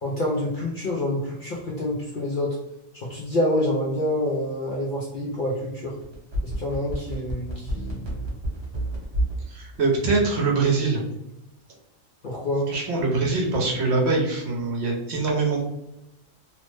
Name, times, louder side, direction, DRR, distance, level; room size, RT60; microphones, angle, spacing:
voice 1, 0.0-2.6 3.1-5.9 6.4-8.3 12.2-12.7, left 1 dB, 60° left, -3 dB, 0.5 m, -27 dB
sound 1, 6.0-9.4 9.7-9.8, right 1 dB, 25° right, 0.7 m, -28 dB
voice 2, 9.5-11.0 12.7-15.6, right 3 dB, 65° right, -1 dB, 0.9 m, -23 dB
3.0 x 2.0 x 3.1 m, 0.87 s
omnidirectional pair, 1.3 m